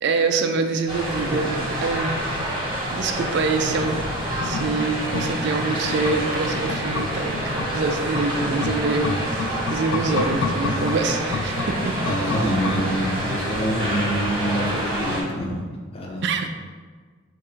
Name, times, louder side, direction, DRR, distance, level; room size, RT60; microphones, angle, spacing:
voice 1, 0.0-2.2 2.9-11.9 16.2-16.5, right 4 dB, 55° right, 6 dB, 0.3 m, -25 dB
sound 1, 0.9-15.2, right 1 dB, 20° right, 0.8 m, -27 dB
sound 2, 3.8-13.3 13.6-13.7, left 3 dB, 85° left, 0.4 m, -30 dB
voice 2, 12.0-15.7 15.9-16.2, equal, 30° left, 0 dB, 0.5 m, -26 dB
3.6 x 2.5 x 4.3 m, 1.5 s
head